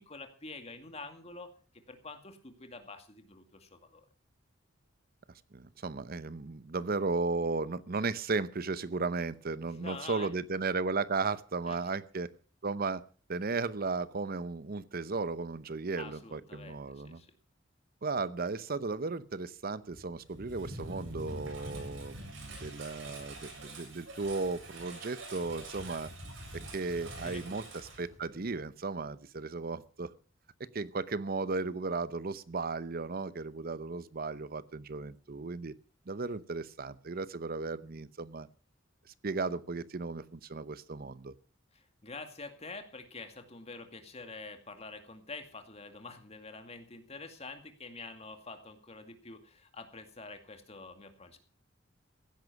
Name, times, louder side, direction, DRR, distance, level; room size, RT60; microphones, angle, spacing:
voice 1, 0.0-1.5 1.9-4.0 9.6-10.3 11.7-11.9 16.0-17.4 27.2-28.0 41.7-51.4, left 3 dB, 35° left, 6 dB, 2.3 m, -47 dB
voice 2, 5.5-12.3 12.6-13.0 13.3-17.2 18.0-26.1 26.5-30.1 30.7-35.7 36.1-38.5 39.2-41.3, right 3 dB, 50° right, 16 dB, 0.8 m, -35 dB
Engine, 19.9-28.6, right 1 dB, 80° right, 7.5 m, -45 dB
16.0 x 10.5 x 5.9 m, 0.41 s
head